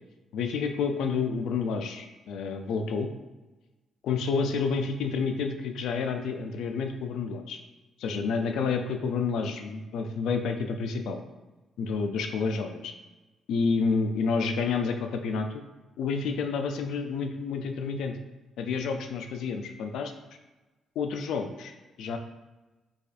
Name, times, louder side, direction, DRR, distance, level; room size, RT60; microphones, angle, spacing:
voice 1, 0.3-3.1 4.0-7.6 8.0-11.2 11.8-12.9 13.5-15.5 16.0-18.2 18.6-20.1 21.0-22.2, left 5 dB, 80° left, 6 dB, 0.4 m, -29 dB
4.8 x 2.4 x 2.5 m, 1.1 s
cardioid pair, 90°, 0 cm